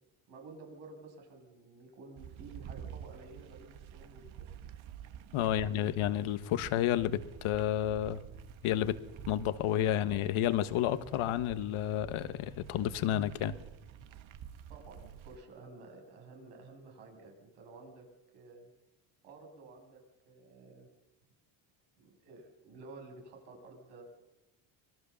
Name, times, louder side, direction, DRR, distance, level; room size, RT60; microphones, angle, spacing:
voice 1, 0.3-4.6 5.5-5.8 14.7-18.0 18.3-18.7 19.2-20.9 22.0-24.1, right 3 dB, 85° right, 1 dB, 7.3 m, -52 dB
sound 1, 2.2-15.4, right 9 dB, 65° right, 1.5 m, -49 dB
voice 2, 5.3-8.2 8.6-9.0 9.3-13.6, left 11 dB, 75° left, 12 dB, 1.5 m, -31 dB
25.5 x 19.5 x 7.0 m, 1.0 s
supercardioid pair, 75°, 50 cm